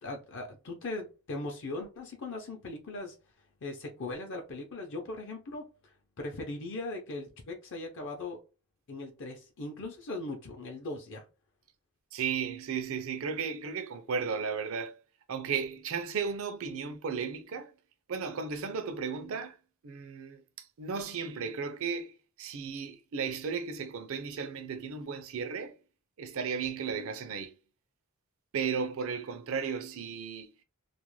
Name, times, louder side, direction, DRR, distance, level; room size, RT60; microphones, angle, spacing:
voice 1, 0.0-3.2 3.6-8.4 8.9-11.2, left 2 dB, 60° left, 0.6 m, -39 dB
voice 2, 12.1-14.9 15.3-17.7 18.1-19.5 19.8-20.4 20.8-22.1 22.4-25.7 26.2-27.5 28.5-30.5, right 6 dB, 65° right, 0.5 m, -34 dB
2.4 x 2.1 x 3.1 m
head